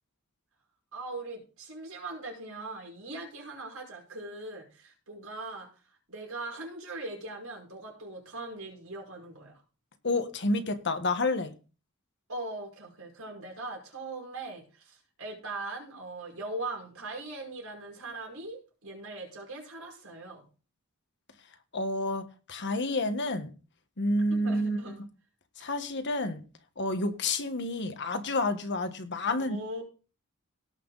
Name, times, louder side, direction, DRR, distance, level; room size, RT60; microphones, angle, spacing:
voice 1, 0.9-5.7 6.1-9.5 12.3-20.4 24.3-25.0 29.2-29.8, right 2 dB, 80° right, 5.4 m, -40 dB
voice 2, 10.0-11.6 21.7-23.5 24.0-24.8 25.6-26.4 26.8-29.6, left 2 dB, 55° left, 1.4 m, -29 dB
18.0 x 6.0 x 4.0 m
head